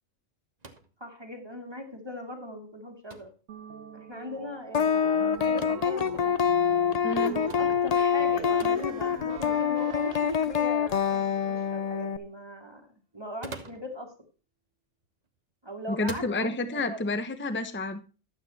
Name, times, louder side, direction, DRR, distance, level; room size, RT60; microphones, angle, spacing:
sound 1, 0.6-1.0 3.1-3.4 5.4-5.8 7.5-7.7 8.6-8.8 9.8-9.9 13.2-13.9 15.0-15.4 16.0-16.4, right 3 dB, 35° right, 1.1 m, -43 dB
voice 1, 1.0-3.3 3.9-6.3 7.6-12.9 13.1-14.1 15.6-17.0, left 1 dB, 20° right, 3 dB, 2.1 m, -40 dB
sound 2, 3.5-10.8, right 6 dB, 80° right, 1.5 m, -41 dB
sound 3, 4.7-12.2, left 8 dB, 45° left, 0.5 m, -26 dB
voice 2, 7.0-7.4 15.9-18.0, left 2 dB, 10° left, 10 dB, 0.8 m, -30 dB
12.0 x 8.4 x 4.2 m, 0.34 s
omnidirectional pair, 1.3 m